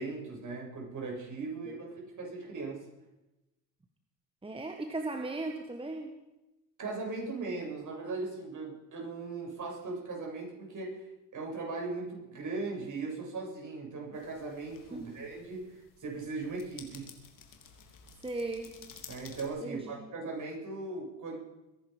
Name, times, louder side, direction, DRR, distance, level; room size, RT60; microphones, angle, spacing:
voice 1, 0.0-2.9 6.8-17.1 19.1-21.4, right 3 dB, 40° right, -1 dB, 7.6 m, -38 dB
voice 2, 4.4-6.2 14.9-15.1 18.2-18.7 19.6-20.1, right 2 dB, 10° right, 4 dB, 1.6 m, -37 dB
sound 1, 14.1-19.5, left 6 dB, 40° left, 3.3 m, -53 dB
23.0 x 11.0 x 5.3 m, 0.99 s
hypercardioid pair, 75°, 47 cm